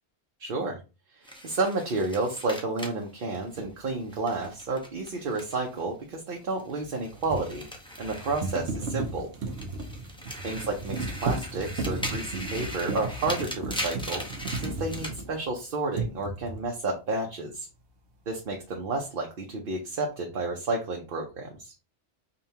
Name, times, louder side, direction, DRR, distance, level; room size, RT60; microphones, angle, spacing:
voice 1, 0.4-0.8 1.2-7.6 8.0-9.3 10.4-14.2 14.6-17.7 18.3-21.7, right 3 dB, 60° right, 0 dB, 0.8 m, -31 dB
sound 1, 1.2-5.8 6.1-9.1 9.4-15.2, equal, 5° left, 0.6 m, -40 dB
sound 2, 3.6-3.7 6.8-15.5 15.9-16.7, right 3 dB, 85° right, 1.0 m, -34 dB
5.1 x 2.4 x 2.8 m, 0.31 s
omnidirectional pair, 1.1 m